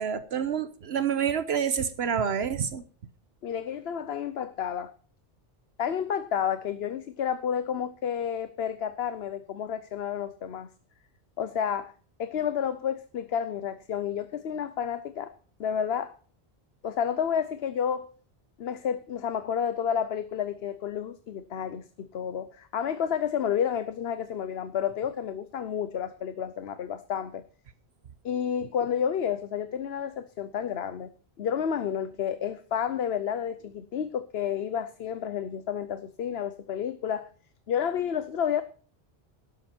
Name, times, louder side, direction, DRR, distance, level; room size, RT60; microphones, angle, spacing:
voice 1, 0.0-2.8, right 7 dB, 80° right, 1.1 m, -28 dB
voice 2, 3.4-4.9 5.8-10.7 11.4-11.9 12.2-15.3 15.6-16.1 16.8-18.1 18.6-27.4 28.2-31.1 31.4-37.3 37.7-38.6, left 8 dB, 75° left, 1.0 m, -30 dB
12.0 x 12.0 x 4.4 m
omnidirectional pair, 1.1 m